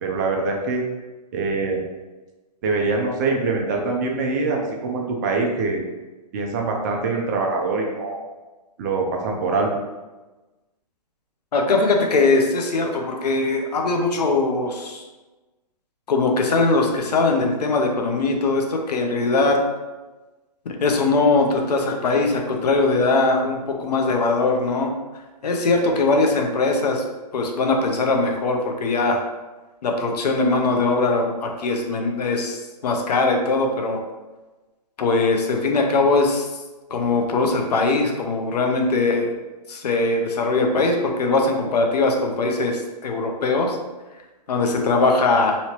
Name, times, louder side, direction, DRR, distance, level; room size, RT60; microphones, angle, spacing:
voice 1, 0.0-0.8 1.3-1.8 2.6-5.8 6.3-8.2 8.8-9.7, right 3 dB, 25° right, 1 dB, 0.4 m, -24 dB
voice 2, 11.5-15.0 16.1-19.6 20.6-24.9 25.4-27.0 27.3-29.2 29.8-34.0 35.0-36.5 36.9-39.4 39.7-43.8 44.5-45.6, left 3 dB, 70° left, 3 dB, 0.7 m, -21 dB
3.0 x 2.8 x 2.9 m, 1.2 s
hypercardioid pair, 145°, 21 cm